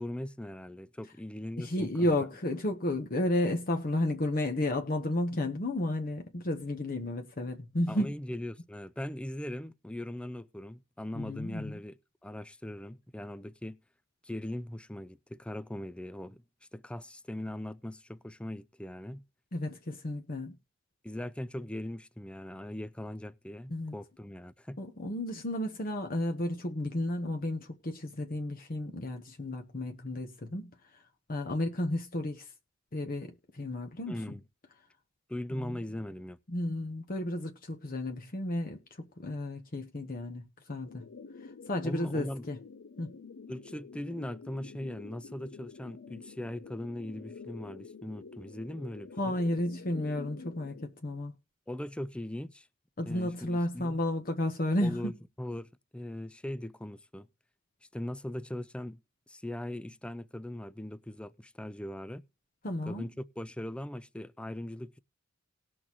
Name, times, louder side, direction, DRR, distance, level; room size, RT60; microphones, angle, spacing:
voice 1, 0.0-2.1 7.9-13.8 14.2-16.4 16.7-19.2 21.0-24.8 34.1-34.4 35.3-36.4 41.8-42.5 43.5-49.3 51.7-52.7 53.1-54.0 54.8-57.3 57.9-59.0 59.3-62.2 62.9-65.0, left 1 dB, 5° left, 0.4 m, -40 dB
voice 2, 1.6-8.1 11.1-11.8 19.5-20.5 23.7-23.9 24.8-30.7 31.3-32.5 32.9-34.1 35.5-35.8 36.5-40.4 40.7-41.0 41.7-42.6 43.0-43.2 49.2-51.3 53.0-55.1 62.6-63.1, left 1 dB, 45° left, 1.0 m, -32 dB
sound 1, 40.8-50.8, left 4 dB, 65° left, 0.5 m, -48 dB
19.0 x 6.3 x 3.0 m
head